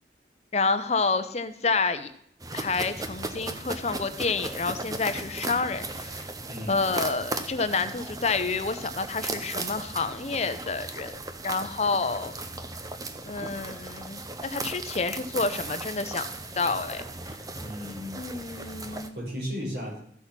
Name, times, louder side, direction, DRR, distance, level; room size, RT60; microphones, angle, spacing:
voice 1, 0.5-2.1 2.5-6.2 6.7-12.3 13.3-16.3 16.6-17.0 18.2-19.2, left 4 dB, 35° left, 11 dB, 0.7 m, -29 dB
sound 1, 2.4-19.1, right 2 dB, 20° right, 0.8 m, -37 dB
voice 2, 6.5-6.9 17.5-18.2 18.9-20.0, equal, 65° right, -2 dB, 4.7 m, -35 dB
14.5 x 6.3 x 5.8 m, 0.69 s
head